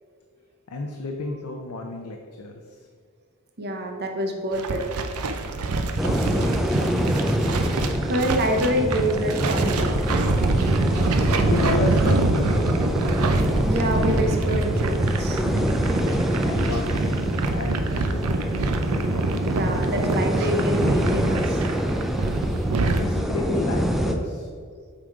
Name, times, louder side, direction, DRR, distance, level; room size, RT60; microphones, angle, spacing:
voice 1, 0.7-2.6 6.0-6.9 11.5-12.8 16.4-17.1 17.5-18.7 22.9-24.5, left 3 dB, 90° left, 3 dB, 0.6 m, -31 dB
voice 2, 3.6-4.9 5.4-5.6 8.1-10.0 13.7-15.4 16.2-16.4 18.5-18.8 19.4-21.6, equal, 50° right, 3 dB, 0.9 m, -27 dB
sound 1, 4.5-23.0, right 2 dB, 85° right, 0.6 m, -25 dB
sound 2, 6.0-24.1, equal, ahead, 0.5 m, -26 dB
8.1 x 3.8 x 4.8 m, 2.1 s
head